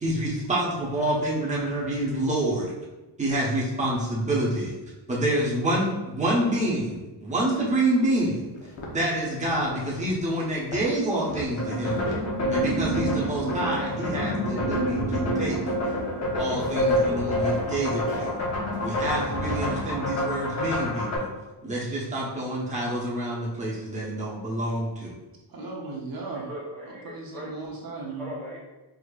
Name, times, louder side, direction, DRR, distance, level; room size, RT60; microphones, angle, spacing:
voice 1, 0.0-2.7 3.2-4.7 5.1-8.5 8.9-12.1 12.5-15.6 16.4-18.4 18.8-21.3 21.6-25.1, right 1 dB, 15° right, -6 dB, 0.9 m, -27 dB
sound 1, 7.4-7.5 8.0-8.1 8.5-14.0 14.4-14.8 15.3-19.7, left 1 dB, 80° left, 1.0 m, -40 dB
sound 2, 11.6-21.2, equal, 35° left, 0.9 m, -27 dB
voice 2, 25.5-26.5 26.8-28.4, right 3 dB, 50° right, -2 dB, 0.8 m, -36 dB
voice 3, 26.3-27.5 28.2-28.6, equal, 5° left, -7 dB, 0.5 m, -39 dB
4.8 x 2.8 x 2.4 m, 1.1 s
wide cardioid pair, 175°, 46 cm